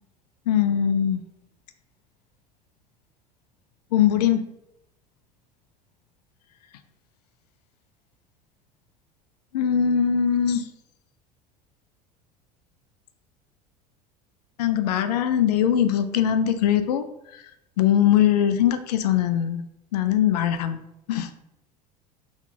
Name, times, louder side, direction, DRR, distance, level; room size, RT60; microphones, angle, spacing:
voice 1, 0.5-1.2 3.9-4.4 9.5-10.6 14.6-17.1 17.3-17.4 17.8-19.6 19.9-21.3, left 9 dB, 75° left, 10 dB, 0.4 m, -21 dB
3.5 x 3.0 x 2.8 m, 0.82 s
hypercardioid pair, 70°, 21 cm